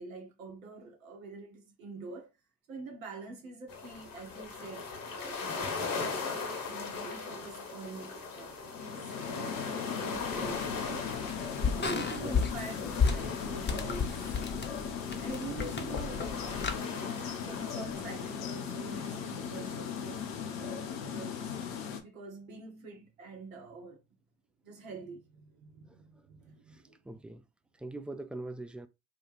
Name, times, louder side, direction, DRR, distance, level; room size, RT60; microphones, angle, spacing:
voice 1, 0.0-2.3 2.7-5.8 6.2-11.2 11.8-14.2 15.2-20.2 20.6-21.6 22.0-24.0 24.6-27.0, right 4 dB, 90° right, 0.8 m, -46 dB
sound 1, 3.7-20.4, left 4 dB, 55° left, 1.1 m, -40 dB
sound 2, 8.6-22.0, left 7 dB, 80° left, 0.7 m, -38 dB
sound 3, 10.1-16.8, left 5 dB, 30° left, 0.7 m, -34 dB
voice 2, 26.7-27.4 27.7-28.9, right 2 dB, 5° right, 0.3 m, -42 dB
4.1 x 2.3 x 3.1 m
hypercardioid pair, 45°, 39 cm